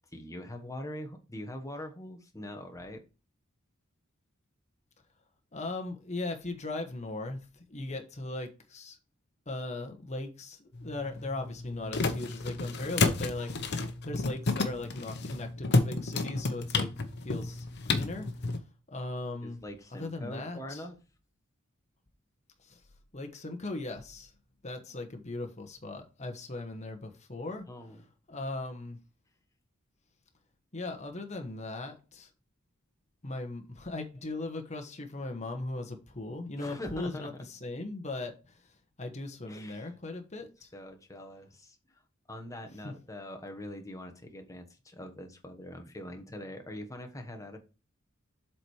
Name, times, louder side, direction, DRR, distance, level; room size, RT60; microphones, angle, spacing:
voice 1, 0.1-3.0 19.4-21.0 27.7-28.0 36.6-37.3 39.5-39.9 40.4-40.5 40.7-42.0 42.3-47.6, left 1 dB, 15° left, 1.2 m, -43 dB
voice 2, 5.5-9.0 9.5-16.9 17.2-18.3 18.9-19.6 20.0-20.8 22.7-22.8 23.1-24.3 24.6-27.6 28.3-29.0 30.7-32.3 33.2-38.4 39.0-40.7 42.8-42.9, left 2 dB, 35° left, 1.2 m, -38 dB
sound 1, 10.7-18.6, left 3 dB, 55° left, 0.9 m, -31 dB
7.6 x 4.4 x 4.8 m
head